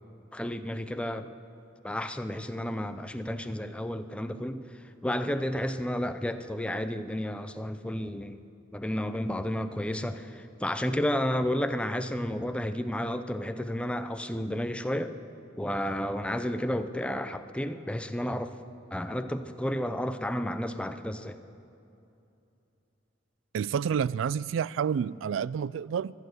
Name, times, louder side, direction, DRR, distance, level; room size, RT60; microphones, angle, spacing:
voice 1, 0.3-1.3 1.8-4.6 5.0-8.4 8.7-15.1 15.6-18.5 18.9-21.4, left 1 dB, 5° left, 0.6 m, -31 dB
voice 2, 23.5-26.1, right 7 dB, 85° right, 0.3 m, -29 dB
15.5 x 11.5 x 8.0 m
head